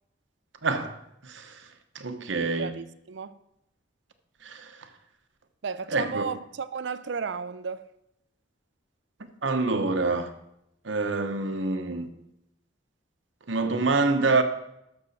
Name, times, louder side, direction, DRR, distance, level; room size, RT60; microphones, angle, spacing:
voice 1, 0.6-1.7 1.9-2.7 4.4-4.9 5.9-6.3 9.2-10.3 10.8-12.1 13.5-14.4, right 3 dB, 80° right, 1.0 m, -27 dB
voice 2, 2.6-3.4 5.6-7.8, right 5 dB, 65° right, 0.5 m, -33 dB
12.0 x 6.4 x 4.2 m
head